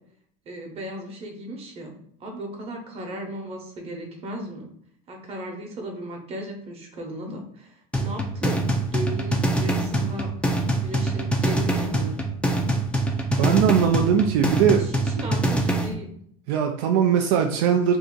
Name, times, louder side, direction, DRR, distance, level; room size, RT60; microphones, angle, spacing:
voice 1, 0.5-1.9 2.2-4.6 5.1-10.3 10.8-12.2 14.8-16.1, right 1 dB, 35° right, 1 dB, 0.9 m, -36 dB
sound 1, 7.9-15.9, right 1 dB, 5° left, 0.4 m, -24 dB
voice 2, 13.3-14.8 16.5-18.0, right 8 dB, 70° right, 3 dB, 0.4 m, -20 dB
2.7 x 2.5 x 3.7 m, 0.65 s
supercardioid pair, 120°, 18 cm